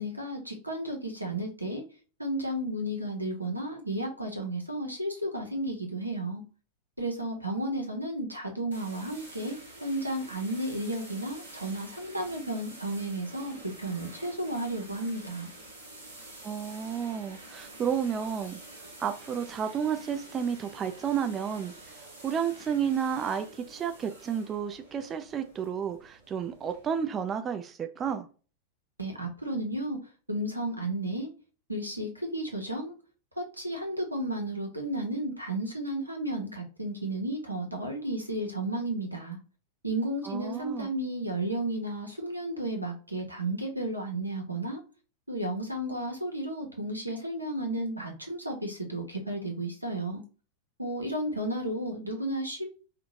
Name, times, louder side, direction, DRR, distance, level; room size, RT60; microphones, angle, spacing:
voice 1, 0.0-1.8 2.2-6.4 7.0-15.5 29.0-30.0 30.3-31.3 31.7-33.0 33.4-39.4 39.8-44.8 45.3-50.2 50.8-52.7, right 1 dB, 85° right, 0.9 m, -33 dB
sound 1, 8.7-27.0, right 2 dB, 70° right, 1.2 m, -48 dB
voice 2, 16.4-18.6 19.0-21.9 22.2-28.3 40.2-40.9, right 7 dB, 25° right, 0.4 m, -31 dB
4.9 x 2.3 x 2.8 m
figure-of-eight pair, 90°, 0 cm